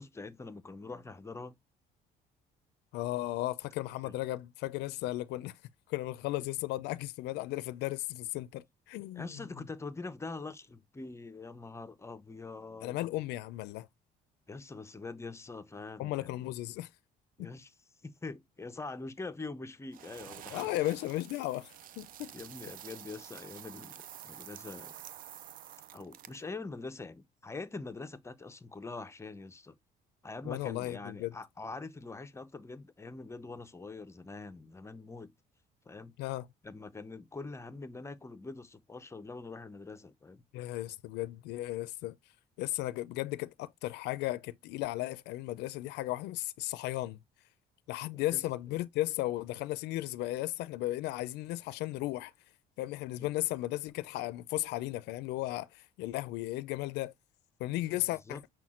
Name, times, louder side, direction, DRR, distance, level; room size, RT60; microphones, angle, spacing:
voice 1, 0.0-1.5 4.0-4.1 6.4-6.5 9.1-13.0 14.5-16.4 17.4-17.7 18.0-20.9 22.3-24.9 25.9-29.7 30.2-35.3 35.9-36.1 36.6-40.4 48.1-48.4 53.2-53.3 57.8-58.4, left 3 dB, 15° left, 0.5 m, -44 dB
voice 2, 2.9-5.5 5.9-9.3 12.8-13.9 16.0-16.9 17.4-17.5 20.5-22.3 30.4-31.3 36.2-36.5 40.5-42.2 42.6-47.2 47.9-52.3 52.8-57.1 57.6-58.4, left 17 dB, 85° left, 0.4 m, -35 dB
sound 1, 19.9-26.5, right 11 dB, 55° right, 0.4 m, -49 dB
5.9 x 2.2 x 3.6 m
cardioid pair, 110°, 17 cm